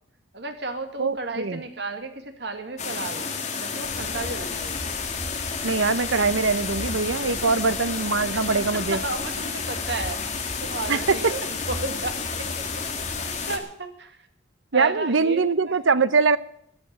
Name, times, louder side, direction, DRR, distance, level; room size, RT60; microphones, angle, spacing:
voice 1, 0.3-3.3 3.6-4.8 8.3-8.4 8.9-10.2 10.6-12.6 13.3-14.2 14.7-15.8, right 3 dB, 60° right, 7 dB, 2.0 m, -33 dB
voice 2, 1.0-1.6 5.6-9.0 10.9-11.3 14.7-16.4, right 4 dB, 90° right, 15 dB, 0.8 m, -22 dB
sound 1, 2.8-13.6, left 5 dB, 35° left, 2.0 m, -31 dB
sound 2, 3.8-13.6, equal, ahead, 2.2 m, -40 dB
13.5 x 8.7 x 9.5 m, 0.69 s
head